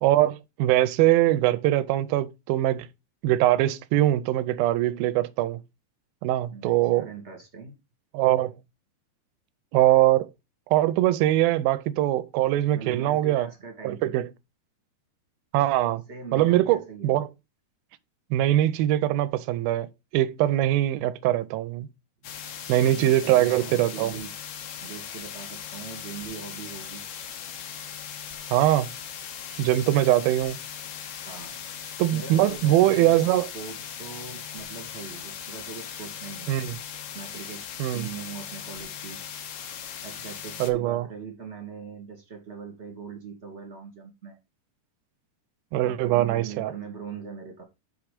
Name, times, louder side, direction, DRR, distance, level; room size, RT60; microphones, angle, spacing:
voice 1, 0.0-2.9 3.2-5.6 6.2-7.1 8.1-8.5 9.7-10.3 10.7-13.5 13.8-14.3 15.5-16.0 16.3-17.3 18.3-19.9 20.1-21.9 22.7-24.2 28.5-28.9 29.6-30.6 32.0-33.5 36.5-36.8 37.8-38.1 40.6-41.1 45.7-46.7, right 14 dB, 80° right, 2.3 m, -22 dB
voice 2, 6.5-7.8 12.7-14.2 16.1-17.1 22.8-24.3 24.8-27.0 31.2-31.6 32.1-33.2 33.5-36.6 37.1-37.7 37.9-39.2 40.0-44.4 45.8-47.6, right 5 dB, 25° right, 1.7 m, -41 dB
sound 1, 22.2-40.7, left 8 dB, 65° left, 2.4 m, -39 dB
6.1 x 6.0 x 5.0 m
omnidirectional pair, 4.5 m